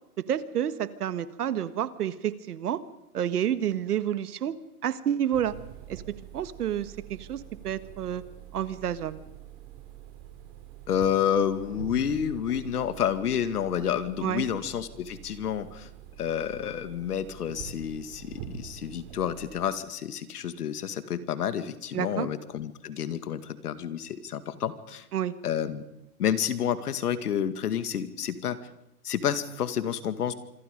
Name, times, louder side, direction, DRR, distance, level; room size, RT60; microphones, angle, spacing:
voice 1, 0.3-2.8 3.1-5.5 5.9-6.0 6.3-8.2 8.5-9.2 14.2-14.4 21.9-22.3 25.1-25.3, right 10 dB, 75° right, 13 dB, 1.7 m, -29 dB
sound 1, 5.3-19.7, right 10 dB, 35° right, 2.8 m, -45 dB
voice 2, 10.9-15.9 16.2-25.1 25.4-25.8 26.2-28.6 29.0-30.3, left 9 dB, 75° left, 11 dB, 2.2 m, -29 dB
26.5 x 23.5 x 5.3 m, 0.86 s
hypercardioid pair, 170°, 46 cm